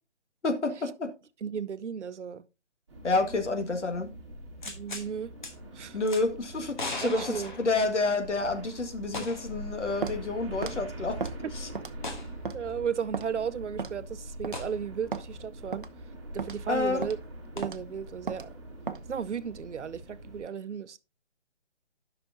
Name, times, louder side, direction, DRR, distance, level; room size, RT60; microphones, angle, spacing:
voice 1, 0.4-1.1 3.0-4.1 5.9-11.3 11.5-11.7 16.7-17.1, left 3 dB, 90° left, 1.7 m, -29 dB
voice 2, 1.4-2.4 4.7-5.3 5.7-6.0 7.0-7.5 12.5-15.8 16.3-17.2 17.6-18.5 19.1-21.0, right 7 dB, 85° right, 0.7 m, -34 dB
sound 1, 2.9-20.4, right 1 dB, 25° right, 1.3 m, -43 dB
sound 2, 4.6-5.1 5.4-5.5 6.1-6.2 6.8-8.3 9.1-9.6 9.9-10.0 12.0-12.3 14.5-14.7 17.6-17.7, left 2 dB, 45° left, 1.3 m, -37 dB
Walk footsteps, 10.0-10.2 10.6-10.8 11.2-11.4 11.8-12.1 12.5-12.6 13.1-13.3 13.8-14.0 14.4-14.6 15.1-15.3 15.7-15.9 16.4-16.6 17.0-17.2 17.6-17.8 18.3-18.5 18.9-19.0, right 5 dB, 50° right, 0.6 m, -35 dB
11.5 x 5.9 x 2.7 m
hypercardioid pair, 175°, 34 cm